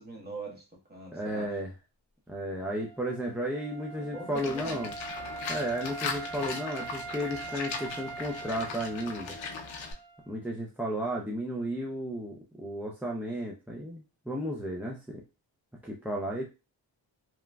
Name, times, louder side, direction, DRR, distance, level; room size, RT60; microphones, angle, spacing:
voice 1, 0.0-1.6 4.0-4.9, right 2 dB, 20° right, 0 dB, 1.1 m, -42 dB
voice 2, 1.1-1.7 2.3-4.9 5.5-9.4 10.3-15.2 15.8-16.4, equal, 5° right, -3 dB, 0.4 m, -34 dB
Wind instrument woodwind instrument, 2.6-10.4, right 4 dB, 65° right, 1.0 m, -42 dB
Livestock farm animals working animals, 4.3-9.9, left 5 dB, 80° left, 0.6 m, -38 dB
2.9 x 2.4 x 2.2 m, 0.28 s
cardioid pair, 70°, 45 cm